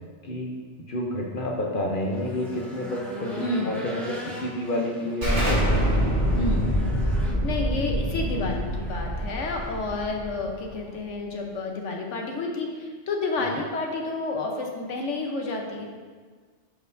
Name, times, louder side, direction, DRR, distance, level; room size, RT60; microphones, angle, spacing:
voice 1, 0.8-6.2, left 1 dB, 50° left, 0 dB, 0.9 m, -30 dB
Race car auto racing / Engine, 0.9-11.0, right 1 dB, ahead, 1.2 m, -42 dB
voice 2, 3.4-3.8 6.4-6.8 7.4-15.9, left 2 dB, 90° left, 1 dB, 1.3 m, -30 dB
Explosion, 5.2-10.7, equal, 75° right, 2.7 m, -25 dB
12.0 x 4.5 x 2.6 m, 1.5 s
omnidirectional pair, 1.2 m